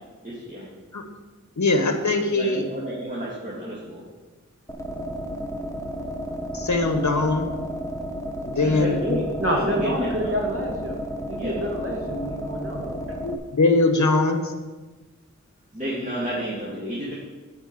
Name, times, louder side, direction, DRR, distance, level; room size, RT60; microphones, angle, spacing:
voice 1, 0.2-0.7 2.3-4.0 8.6-10.4 11.4-11.7 15.7-17.1, right 1 dB, 25° right, -7 dB, 2.3 m, -31 dB
voice 2, 1.6-2.6 6.5-7.5 8.4-9.2 13.2-14.5, left 3 dB, 65° left, 6 dB, 1.2 m, -21 dB
sound 1, 4.7-13.3, equal, 10° left, 1.1 m, -32 dB
voice 3, 9.4-11.0 11.3-12.9, equal, 45° right, 0 dB, 2.1 m, -27 dB
9.0 x 5.2 x 6.9 m, 1.3 s
wide cardioid pair, 40°, 31 cm